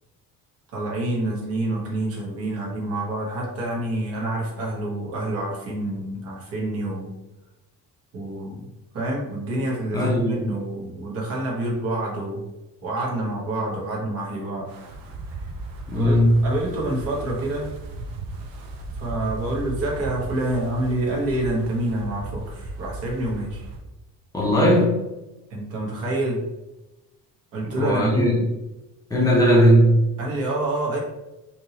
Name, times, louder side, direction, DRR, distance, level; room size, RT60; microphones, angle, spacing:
voice 1, 0.7-7.1 8.1-8.7 8.9-12.4 12.8-14.7 15.9-17.7 18.9-23.7 25.5-26.4 27.5-28.4 30.2-31.0, right 1 dB, 45° right, -3 dB, 1.1 m, -27 dB
voice 2, 9.9-10.5 15.9-16.4 24.3-24.9 27.6-28.4 29.1-30.0, equal, 10° left, -3 dB, 0.8 m, -18 dB
Wind, 14.7-23.8, right 2 dB, 85° right, 0.7 m, -36 dB
3.5 x 2.9 x 2.8 m, 1.0 s
cardioid pair, 175°, 33 cm